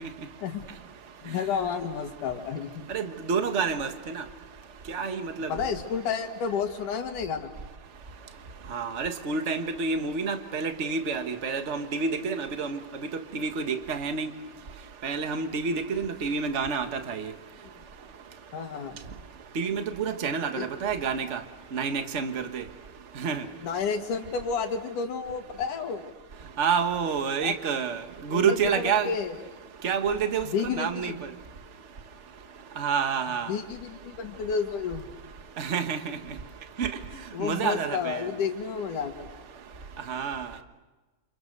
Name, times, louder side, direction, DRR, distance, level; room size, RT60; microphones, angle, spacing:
voice 1, 1.2-2.9 5.5-7.5 18.5-19.0 20.6-20.7 23.6-26.1 27.4-27.6 28.3-29.3 30.4-31.2 33.5-35.0 37.3-39.3, left 6 dB, 75° left, 5 dB, 3.4 m, -31 dB
voice 2, 2.9-4.2 4.9-5.5 8.7-12.8 13.3-14.3 15.0-17.3 19.5-21.4 21.7-22.6 23.2-23.4 26.6-29.1 29.8-31.1 32.8-33.5 35.6-36.0 36.8-36.9 37.4-38.3 40.1-40.5, right 5 dB, 55° right, 6 dB, 0.7 m, -28 dB
30.0 x 27.5 x 6.7 m, 1.2 s
omnidirectional pair, 3.7 m